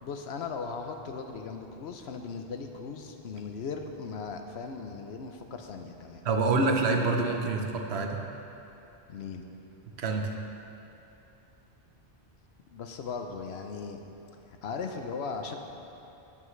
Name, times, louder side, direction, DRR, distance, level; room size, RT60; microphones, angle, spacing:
voice 1, 0.0-6.2 9.1-9.4 12.7-14.0 14.6-15.6, left 5 dB, 75° left, 5 dB, 0.9 m, -38 dB
voice 2, 6.2-8.2 10.0-10.3, right 3 dB, 75° right, 3 dB, 1.1 m, -26 dB
17.0 x 5.7 x 3.2 m, 2.9 s
omnidirectional pair, 1.1 m